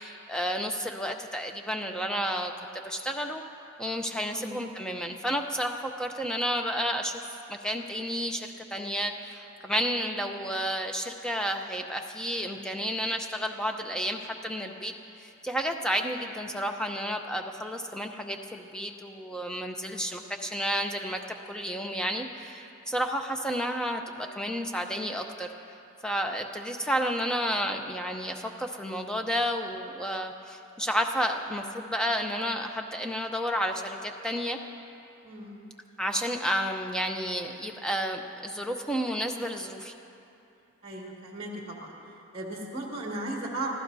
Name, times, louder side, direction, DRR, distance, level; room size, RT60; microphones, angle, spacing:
voice 1, 0.0-3.4 3.8-7.2 7.5-14.9 15.2-25.5 26.0-34.6 36.0-39.9, equal, 5° left, 4 dB, 0.6 m, -31 dB
voice 2, 35.2-35.6 40.8-41.9 42.3-43.7, right 1 dB, 25° right, -3 dB, 2.0 m, -36 dB
26.5 x 15.5 x 2.7 m, 2.7 s
head